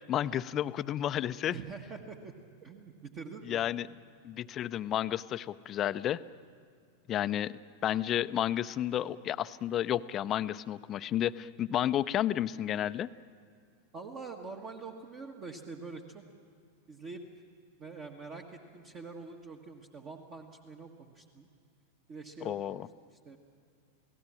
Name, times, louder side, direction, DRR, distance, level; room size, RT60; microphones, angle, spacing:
voice 1, 0.1-1.6 3.5-3.9 4.2-6.2 7.1-13.1 22.4-22.9, left 11 dB, 30° left, 15 dB, 0.6 m, -31 dB
voice 2, 1.5-2.3 2.6-3.6 13.9-16.2 16.9-17.2 17.8-21.5 22.1-22.8 23.1-23.4, right 4 dB, 30° right, 2 dB, 1.5 m, -45 dB
29.5 x 18.0 x 7.5 m, 2.3 s
figure-of-eight pair, 90°, 0 cm